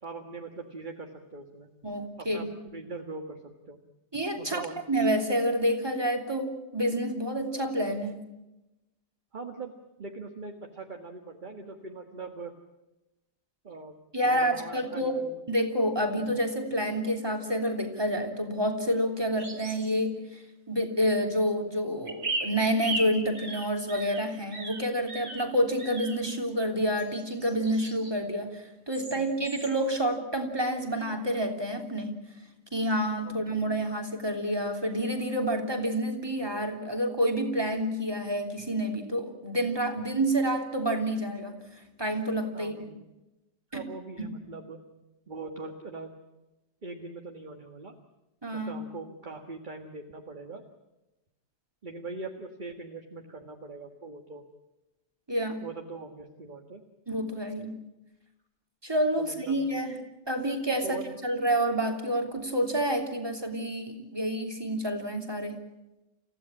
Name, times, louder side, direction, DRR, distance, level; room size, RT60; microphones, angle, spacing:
voice 1, 0.0-1.7 2.2-3.8 4.4-4.8 9.3-12.5 13.6-13.9 14.2-15.4 16.2-16.3 29.1-29.3 33.2-33.5 42.5-43.0 43.7-44.8 45.3-46.1 46.8-48.0 48.5-50.6 51.8-54.4 55.6-56.8 59.2-59.6 60.8-61.1, right 3 dB, 30° right, 4 dB, 1.7 m, -41 dB
voice 2, 1.8-2.5 4.1-8.3 14.1-15.2 15.5-20.4 20.7-32.2 32.7-41.6 42.0-42.7 43.7-43.8 44.2-44.3 48.4-48.8 55.3-55.6 57.1-57.8 58.8-60.0 60.3-65.6, equal, 15° right, 3 dB, 3.1 m, -28 dB
sound 1, 19.4-19.9 22.1-25.5 25.8-26.2 26.9-28.2 28.9-29.2 29.4-29.7, right 2 dB, 65° right, 4.2 m, -37 dB
30.0 x 16.0 x 8.8 m, 1.0 s
omnidirectional pair, 1.7 m